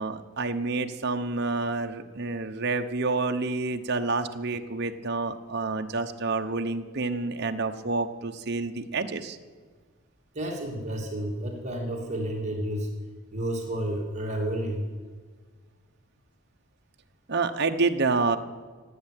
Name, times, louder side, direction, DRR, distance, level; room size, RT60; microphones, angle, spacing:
voice 1, 0.0-9.4 17.3-18.4, right 3 dB, 50° right, 6 dB, 1.0 m, -28 dB
voice 2, 10.3-12.9 13.3-14.8, right 1 dB, 30° right, -1 dB, 2.7 m, -31 dB
16.5 x 8.9 x 8.4 m, 1.5 s
head